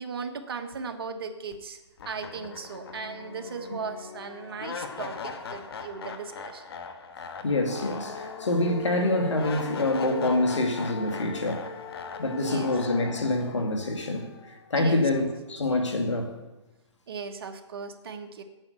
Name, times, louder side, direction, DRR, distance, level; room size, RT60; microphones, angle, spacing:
voice 1, 0.0-1.8 2.0-6.7 12.3-12.7 14.8-15.3 17.1-18.4, right 5 dB, 55° right, 6 dB, 1.3 m, -37 dB
sound 1, 1.5-1.6 2.0-15.0, left 4 dB, 55° left, 1.4 m, -39 dB
voice 2, 7.4-11.7 12.2-16.4, left 2 dB, 80° left, 4 dB, 2.1 m, -26 dB
8.9 x 8.0 x 8.3 m, 1.0 s
hypercardioid pair, 145°, 15 cm